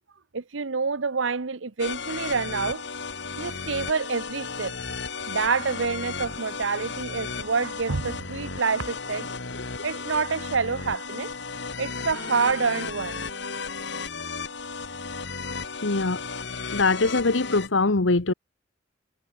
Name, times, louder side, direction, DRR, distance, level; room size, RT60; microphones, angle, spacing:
voice 1, 0.3-2.8 3.4-4.7 5.3-9.3 9.8-11.3 11.8-13.3, right 5 dB, 85° right, 0.9 m, -27 dB
sound 1, 1.8-17.7, left 4 dB, 65° left, 2.8 m, -34 dB
voice 2, 15.8-16.2 16.7-18.3, left 3 dB, 85° left, 1.3 m, -22 dB
head